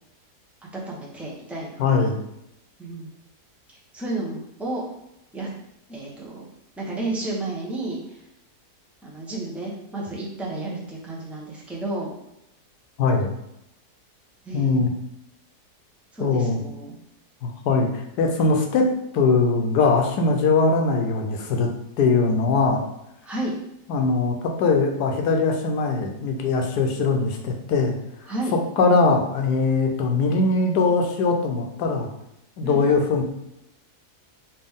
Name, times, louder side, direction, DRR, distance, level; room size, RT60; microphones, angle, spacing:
voice 1, 0.9-1.9 2.8-3.1 3.9-4.8 5.3-5.5 5.9-6.5 6.8-8.2 9.0-12.1 14.4-14.9 16.1-17.0 23.2-23.5 28.3-28.5 32.6-32.8, right 2 dB, ahead, -5 dB, 0.5 m, -32 dB
voice 2, 1.8-2.2 13.0-13.3 14.5-14.9 16.2-16.6 17.4-17.9 18.2-18.9 19.1-21.7 22.0-22.8 23.9-27.9 28.5-32.1 32.6-33.2, left 4 dB, 80° left, 3 dB, 1.2 m, -21 dB
4.4 x 3.0 x 3.5 m, 0.82 s
omnidirectional pair, 1.7 m